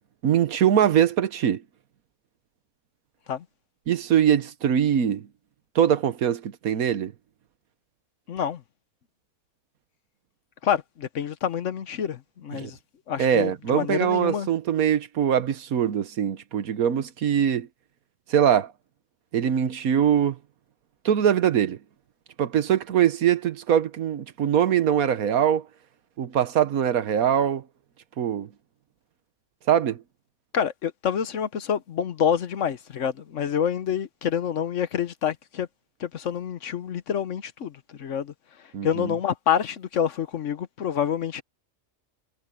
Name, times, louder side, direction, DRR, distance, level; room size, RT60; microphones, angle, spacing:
voice 1, 0.2-1.6 3.9-5.3 5.7-7.1 12.5-12.7 13.2-17.7 18.3-18.7 19.3-20.4 21.0-21.8 22.4-25.6 26.2-27.6 28.2-28.5 29.7-30.0 38.7-39.1, right 9 dB, 85° right, 1.5 m, -22 dB
voice 2, 8.3-8.6 10.6-12.8 13.1-14.5 30.5-35.7 36.0-38.3 38.8-41.4, left 8 dB, 60° left, 1.2 m, -27 dB
omnidirectional pair, 1.5 m